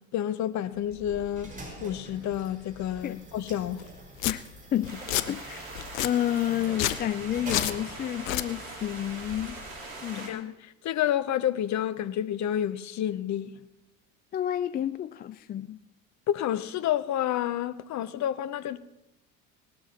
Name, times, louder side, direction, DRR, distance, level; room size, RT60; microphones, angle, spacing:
voice 1, 0.1-1.5 1.8-3.8 10.3-10.4 10.8-13.5 16.3-18.8, left 11 dB, 45° left, 0.8 m, -29 dB
sound 1, 0.7-10.0, right 1 dB, 20° right, 5.4 m, -46 dB
Domestic sounds home sounds, 3.8-3.9 4.2-4.3 4.8-5.3 5.8-6.1 6.7-7.0 7.5-7.8 8.2-8.5, left 14 dB, 80° left, 0.7 m, -28 dB
voice 2, 4.7-5.7 6.0-9.6 10.0-10.5 14.3-15.8, left 11 dB, 25° left, 0.4 m, -30 dB
sound 2, 4.9-10.3, right 2 dB, 90° right, 2.9 m, -42 dB
19.5 x 13.0 x 3.0 m
hypercardioid pair, 70°, 40 cm